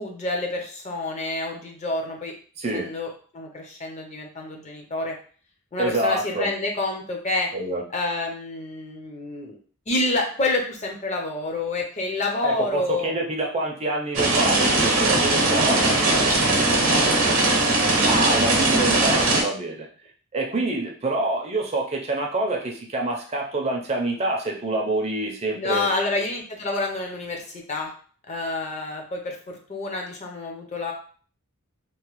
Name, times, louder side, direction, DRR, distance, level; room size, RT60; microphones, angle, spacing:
voice 1, 0.0-2.3 2.7-5.2 5.7-7.5 7.9-9.6 9.9-13.1 15.7-17.6 25.5-27.9 28.3-30.9, left 2 dB, 30° left, 1 dB, 0.5 m, -28 dB
voice 2, 2.6-2.9 5.8-6.5 7.5-7.8 12.4-15.8 18.0-19.9 20.3-25.9, right 2 dB, 30° right, 0 dB, 0.4 m, -26 dB
sound 1, 14.1-19.4, right 2 dB, 70° right, 0.7 m, -20 dB
3.0 x 2.1 x 2.9 m, 0.43 s
head